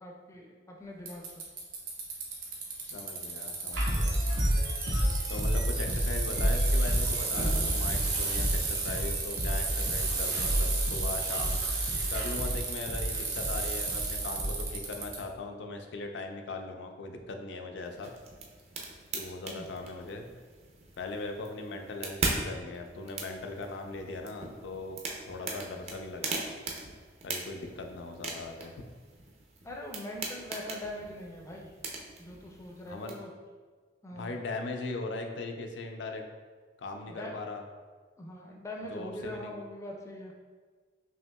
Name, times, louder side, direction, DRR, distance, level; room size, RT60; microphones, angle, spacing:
voice 1, 0.0-1.4 19.5-19.7 29.6-31.7 32.2-33.3 34.0-34.4 37.1-37.3 38.2-40.3, left 1 dB, 15° left, 0 dB, 0.4 m, -42 dB
Bicycle, 1.1-15.2, right 4 dB, 55° right, 0.9 m, -33 dB
voice 2, 2.8-4.2 5.3-11.6 12.1-18.1 19.1-20.3 21.0-25.0 25.3-26.5 27.2-28.7 32.9-33.2 34.1-36.3 36.8-37.6 38.9-39.5, left 3 dB, 75° left, 4 dB, 0.4 m, -39 dB
sound 1, 3.7-14.7, equal, 85° right, 1.1 m, -30 dB
sound 2, 17.8-33.1, right 3 dB, 35° right, 0.5 m, -40 dB
5.5 x 2.8 x 2.2 m, 1.5 s
head